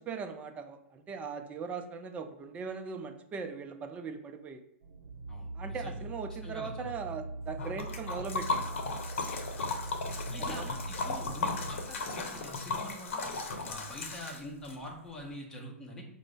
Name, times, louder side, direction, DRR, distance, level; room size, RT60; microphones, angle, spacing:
voice 1, 0.0-4.6 5.5-8.7 10.4-10.7 11.2-11.4, right 5 dB, 20° right, 6 dB, 0.4 m, -40 dB
sound 1, 4.8-11.9, right 2 dB, 55° right, 0.6 m, -41 dB
voice 2, 5.3-6.0 6.4-6.9 9.6-9.8 10.3-13.3 13.6-16.0, equal, 10° left, -2 dB, 0.8 m, -45 dB
Liquid, 7.6-14.7, left 3 dB, 65° left, 0.8 m, -36 dB
5.0 x 2.0 x 3.3 m, 0.81 s
hypercardioid pair, 120°, 8 cm